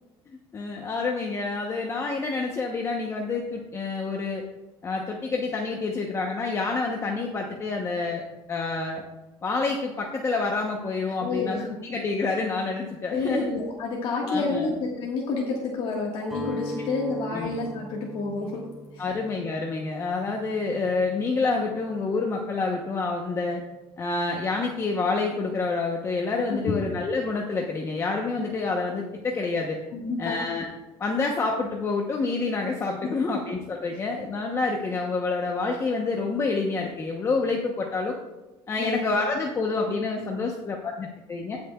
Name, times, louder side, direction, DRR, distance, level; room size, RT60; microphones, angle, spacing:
voice 1, 0.5-4.4 4.8-8.2 8.5-9.0 9.4-13.5 14.3-14.7 17.3-17.5 19.0-23.6 24.0-29.8 30.2-30.7 31.0-38.2 38.7-41.6, left 3 dB, 25° left, 1 dB, 0.9 m, -28 dB
voice 2, 11.2-11.7 13.1-18.6 18.9-19.1 26.7-26.8 29.9-30.4 38.8-39.0, left 3 dB, 60° left, -2 dB, 1.6 m, -29 dB
Guitar, 16.2-22.3, equal, 5° right, 1.9 m, -41 dB
18.5 x 6.6 x 2.3 m, 1.1 s
cardioid pair, 145°, 10 cm